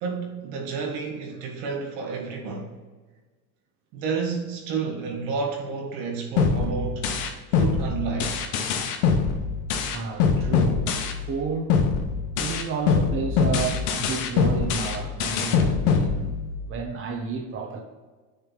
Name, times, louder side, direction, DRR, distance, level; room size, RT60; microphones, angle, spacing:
voice 1, 0.0-2.7 3.9-7.1 7.5-8.4, right 5 dB, 75° right, 0 dB, 2.0 m, -30 dB
sound 1, 6.4-11.4 11.7-16.7, left 5 dB, 85° left, 1.1 m, -24 dB
voice 2, 9.9-10.9 11.2-11.8 12.3-16.3 16.7-17.8, right 4 dB, 30° right, 2 dB, 0.9 m, -31 dB
6.6 x 3.4 x 5.9 m, 1.3 s
supercardioid pair, 115°, 46 cm